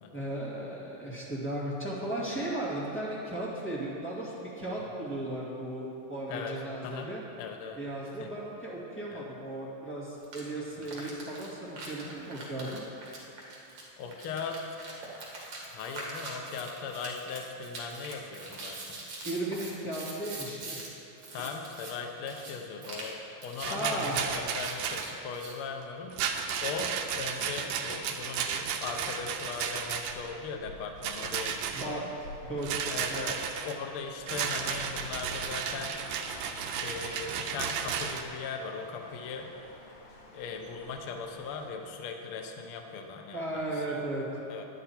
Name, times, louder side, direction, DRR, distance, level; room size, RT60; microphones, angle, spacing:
voice 1, 0.1-7.2 7.8-12.8 19.2-20.8 23.7-24.2 31.7-32.0 32.4-33.3 43.3-44.2, right 1 dB, 5° left, -7 dB, 1.1 m, -36 dB
voice 2, 6.8-7.8 8.2-8.3 9.1-9.2 10.8-10.9 12.6-12.8 14.0-14.8 15.7-19.0 21.3-32.0 32.9-36.0 36.8-39.5 40.3-44.0 44.3-44.7, left 5 dB, 90° left, 3 dB, 1.2 m, -39 dB
sound 1, 10.2-10.4 10.8-20.9 21.2-21.9 22.3-22.5 22.8-23.1 23.4-23.7 24.0-25.5, right 2 dB, 50° right, 2.3 m, -43 dB
Rattle, 23.6-25.1 26.1-30.3 31.0-31.9 32.6-33.8 34.3-38.2, right 7 dB, 85° right, 2.1 m, -33 dB
sound 2, 29.2-41.7, left 2 dB, 70° left, 1.2 m, -50 dB
10.5 x 9.4 x 4.3 m, 2.9 s
omnidirectional pair, 3.6 m